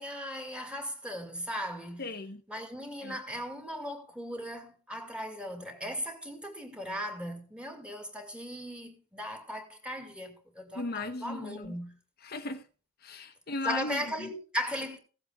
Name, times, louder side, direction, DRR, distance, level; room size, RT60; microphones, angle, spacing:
voice 1, 0.0-2.1 2.5-12.0 13.6-15.0, equal, 5° right, 2.2 m, -38 dB
voice 2, 2.0-2.4 3.0-3.2 10.7-11.7 12.2-12.6 13.0-14.3, left 2 dB, 50° left, 1.0 m, -36 dB
16.0 x 7.9 x 3.6 m
head